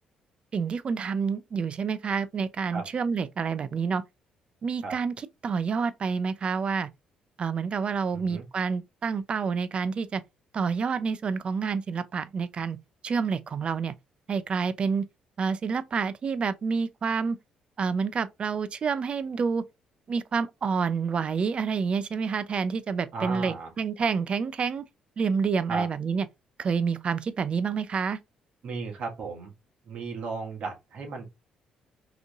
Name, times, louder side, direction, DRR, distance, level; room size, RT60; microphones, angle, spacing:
voice 1, 0.5-4.0 4.6-5.1 5.4-6.9 7.4-10.2 10.5-12.8 13.0-13.9 14.3-15.1 15.4-17.4 17.8-19.6 20.1-24.8 25.2-26.2 26.6-28.2, right 5 dB, 45° right, 0.5 m, -28 dB
voice 2, 8.1-8.5 23.1-23.7 25.7-25.9 28.6-29.5 29.8-31.3, right 4 dB, 65° right, 1.8 m, -35 dB
4.9 x 3.1 x 2.5 m
supercardioid pair, 65°, 2 cm